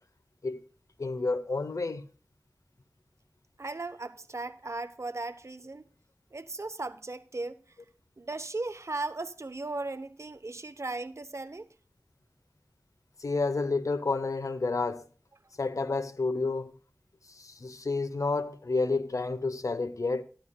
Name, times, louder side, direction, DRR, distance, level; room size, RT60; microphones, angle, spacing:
voice 1, 1.0-2.0 13.2-15.0 15.6-16.7 17.3-20.2, left 3 dB, 85° left, 0.9 m, -30 dB
voice 2, 3.6-5.9 6.3-7.6 8.2-11.7, right 2 dB, 60° right, 0.9 m, -37 dB
14.5 x 11.0 x 2.2 m
wide cardioid pair, 40°, 5 cm